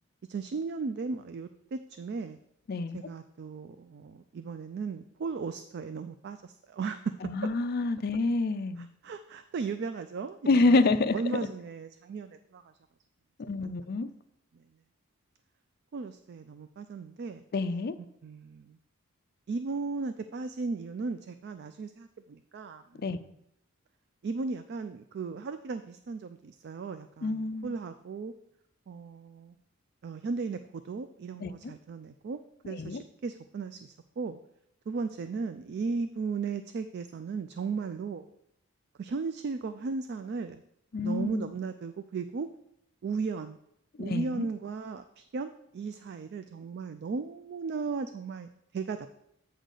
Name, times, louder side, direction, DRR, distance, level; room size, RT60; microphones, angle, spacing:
voice 1, 0.3-2.4 2.9-7.1 8.8-10.8 11.1-12.6 13.6-13.7 14.5-14.6 15.9-17.4 18.2-18.8 19.5-23.1 24.2-28.3 28.9-29.5 30.0-34.4 34.9-38.3 39.0-40.6 41.0-42.5 43.0-43.6 44.0-49.1, right 4 dB, 50° right, 10 dB, 0.3 m, -36 dB
voice 2, 7.2-8.9 10.5-11.4 13.4-14.1 17.5-17.9 23.0-23.2 27.2-27.8 31.4-31.5 32.6-33.0 40.9-41.5 44.0-44.5, left 3 dB, 45° left, 10 dB, 0.4 m, -27 dB
8.1 x 3.9 x 6.5 m, 0.78 s
head